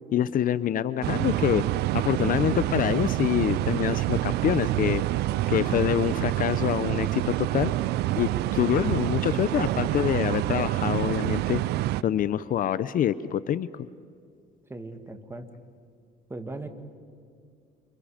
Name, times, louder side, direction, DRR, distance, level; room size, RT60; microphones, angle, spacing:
voice 1, 0.1-1.6 1.9-5.0 5.5-7.7 8.2-11.6 12.0-13.7, left 10 dB, 55° left, 16 dB, 0.7 m, -26 dB
sound 1, 1.0-12.0, right 16 dB, 80° right, 0.5 m, -27 dB
voice 2, 14.7-15.5 16.3-16.7, right 2 dB, 15° right, 7 dB, 2.2 m, -38 dB
30.0 x 27.5 x 5.1 m, 2.3 s
cardioid pair, 110°, 17 cm